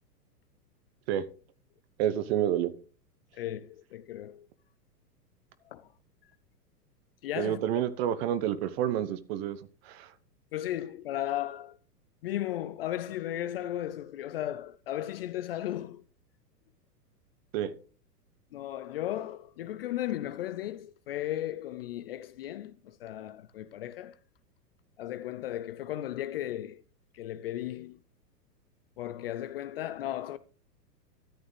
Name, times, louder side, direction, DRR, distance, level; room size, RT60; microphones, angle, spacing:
voice 1, 2.0-2.7 7.4-9.6 9.8-10.1 17.5-17.7, right 11 dB, 40° right, 1.0 m, -29 dB
voice 2, 3.3-4.5 5.7-5.9 7.2-7.8 10.5-11.8 12.2-16.0 18.5-24.2 25.0-26.8 27.1-28.0 29.0-30.4, left 13 dB, 40° left, 0.4 m, -35 dB
13.5 x 8.5 x 3.3 m
hypercardioid pair, 115°, 48 cm